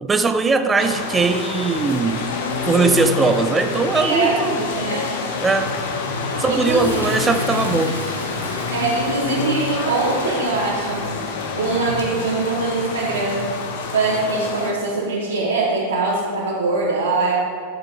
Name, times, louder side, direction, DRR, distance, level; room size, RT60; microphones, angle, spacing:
voice 1, 0.0-2.2 2.7-4.6 5.4-5.8 6.4-8.0, right 4 dB, 15° right, 9 dB, 0.6 m, -20 dB
sound 1, 0.8-14.7, left 4 dB, 55° left, 1.1 m, -27 dB
voice 2, 3.9-5.0 6.3-6.9 8.7-11.1 11.5-13.5 13.9-17.4, right 3 dB, 70° right, -8 dB, 1.7 m, -22 dB
Toilet flush, 5.5-13.9, equal, 90° left, 1.6 m, -37 dB
12.5 x 6.7 x 3.6 m, 2.3 s
figure-of-eight pair, 90°, 0 cm